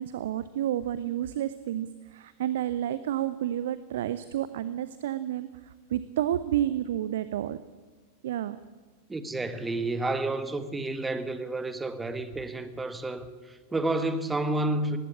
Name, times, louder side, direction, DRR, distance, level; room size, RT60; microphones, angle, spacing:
voice 1, 0.0-1.9 2.1-5.5 5.9-7.6 8.2-8.6, right 11 dB, 55° right, 14 dB, 0.8 m, -30 dB
voice 2, 9.1-15.0, right 2 dB, 10° right, 11 dB, 1.7 m, -30 dB
19.5 x 16.0 x 9.9 m, 1.3 s
figure-of-eight pair, 90°, 0 cm